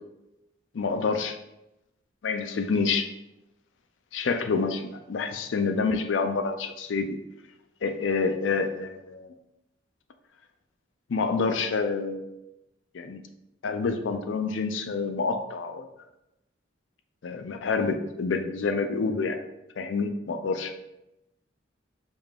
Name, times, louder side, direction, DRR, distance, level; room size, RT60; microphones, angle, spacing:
voice 1, 0.7-1.3 2.2-3.1 4.1-7.1 7.8-9.3 11.1-12.3 12.9-13.2 13.6-15.9 17.2-19.4 19.8-20.7, left 4 dB, 75° left, 7 dB, 0.4 m, -27 dB
5.0 x 2.4 x 3.6 m, 0.91 s
head